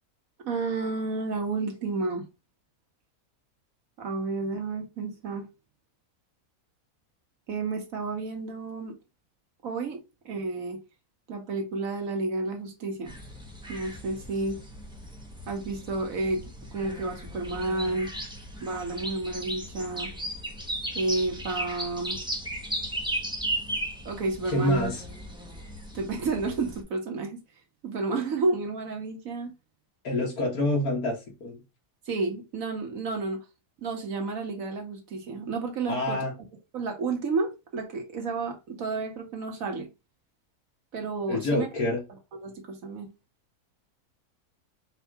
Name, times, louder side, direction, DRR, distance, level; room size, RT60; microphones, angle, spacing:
voice 1, 0.4-2.3 4.0-5.5 7.5-8.9 9.6-10.0 10.2-10.8 11.3-13.1 13.7-14.6 15.5-18.1 18.6-20.1 20.9-22.2 24.0-24.9 25.9-27.4 27.8-29.5 32.1-33.4 33.8-36.2 36.7-39.9 40.9-41.7 42.4-43.1, right 3 dB, 60° right, 1.5 m, -31 dB
sound 1, 13.1-26.8, right 1 dB, 5° right, 0.6 m, -36 dB
voice 2, 24.4-25.0 30.0-31.6 35.9-36.3 41.3-42.0, left 1 dB, 75° left, 1.9 m, -27 dB
4.6 x 2.5 x 4.6 m
omnidirectional pair, 1.6 m